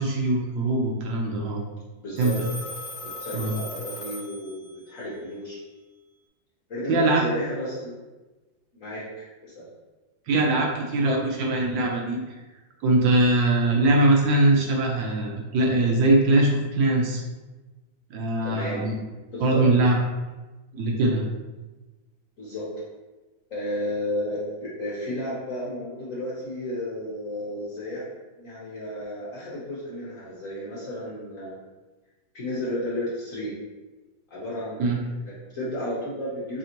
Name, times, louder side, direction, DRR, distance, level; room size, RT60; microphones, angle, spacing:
voice 1, 0.0-1.6 2.2-2.3 3.3-3.5 6.9-7.2 10.3-12.2 12.8-17.2 18.1-19.0 19.4-20.0 20.7-21.2 34.8-35.0, right 2 dB, 75° right, 0 dB, 1.2 m, -22 dB
voice 2, 2.0-2.3 3.0-5.6 6.7-7.9 8.7-9.7 18.4-18.9 19.3-19.6 22.4-22.6 23.5-28.0 28.4-31.6 32.3-33.5 34.3-36.6, left 1 dB, 55° left, -7 dB, 1.0 m, -33 dB
Telephone, 2.2-4.9, left 1 dB, 75° left, 0.5 m, -38 dB
3.8 x 3.4 x 2.8 m, 1.2 s
omnidirectional pair, 2.2 m